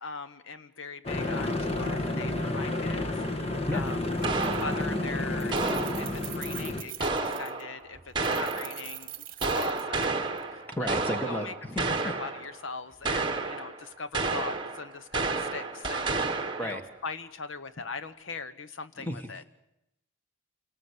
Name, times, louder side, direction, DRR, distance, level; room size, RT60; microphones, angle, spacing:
voice 1, 0.0-3.0 3.4-4.0 4.5-7.1 7.4-9.1 9.4-10.9 11.3-19.5, left 4 dB, 70° left, 13 dB, 1.0 m, -40 dB
sound 1, 1.0-6.8, left 2 dB, 30° left, 1.8 m, -31 dB
Keys jangling, 3.8-3.9 4.2-4.9 5.2-7.6 8.2-10.4, right 14 dB, 45° right, 1.5 m, -44 dB
sound 2, 4.2-6.4 7.0-8.9 9.4-12.6 13.0-13.9 14.1-16.9, right 3 dB, 20° right, 1.6 m, -31 dB
voice 2, 10.8-12.2 16.6-16.8 19.0-19.5, equal, 10° left, 6 dB, 1.7 m, -33 dB
28.0 x 18.5 x 8.5 m, 0.88 s
head